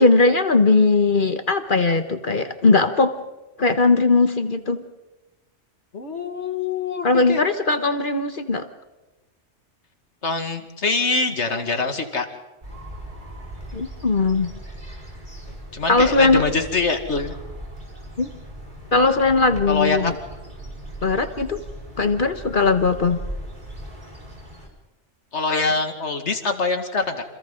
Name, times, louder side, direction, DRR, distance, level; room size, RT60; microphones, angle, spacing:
voice 1, 0.0-3.1 3.6-4.8 7.0-8.6 13.7-14.5 15.9-16.4 18.2-18.3 18.9-20.1 21.0-21.6 22.0-23.2, left 3 dB, 45° left, 9 dB, 1.3 m, -19 dB
voice 2, 5.9-7.4 10.2-12.3 15.5-17.3 19.7-20.1 25.3-27.2, left 4 dB, 70° left, 6 dB, 2.3 m, -24 dB
sound 1, 12.6-24.7, right 1 dB, 40° right, 5.0 m, -38 dB
28.5 x 27.0 x 3.9 m, 1.1 s
omnidirectional pair, 1.2 m